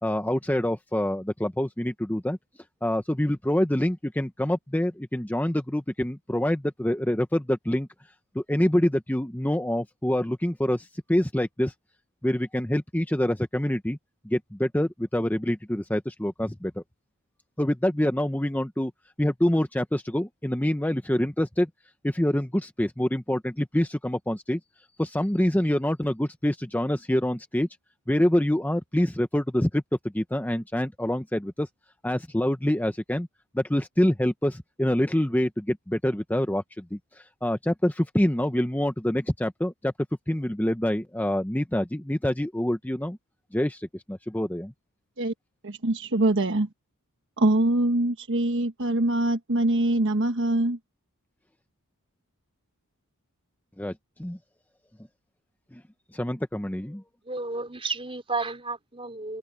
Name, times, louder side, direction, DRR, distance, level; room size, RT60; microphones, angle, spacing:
voice 1, 0.0-2.4 2.8-7.9 8.3-11.7 12.2-14.0 14.2-16.8 17.6-18.9 19.2-21.7 22.0-24.6 25.0-27.7 28.1-29.8 30.1-31.7 32.0-33.3 33.5-39.9 40.3-43.2 43.5-44.7 53.8-54.4 55.7-55.8 56.1-57.0, left 1 dB, 10° left, 0.8 m, -26 dB
voice 2, 45.6-46.7 47.4-50.8, right 1 dB, 55° right, 1.3 m, -23 dB
voice 3, 57.3-59.4, right 3 dB, 25° right, 3.7 m, -32 dB
head